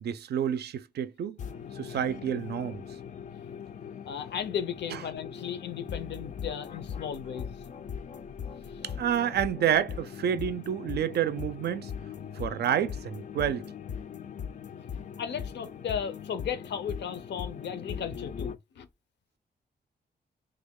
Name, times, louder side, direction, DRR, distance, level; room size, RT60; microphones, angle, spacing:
voice 1, 0.0-1.4 1.7-2.8 4.9-5.0 8.8-11.9 12.4-13.7, right 9 dB, 70° right, 0.4 m, -29 dB
sound 1, 1.4-18.6, left 7 dB, 45° left, 0.4 m, -40 dB
voice 2, 4.1-7.6 15.2-18.9, left 8 dB, 85° left, 0.7 m, -35 dB
3.3 x 2.2 x 3.6 m
wide cardioid pair, 140°, 18 cm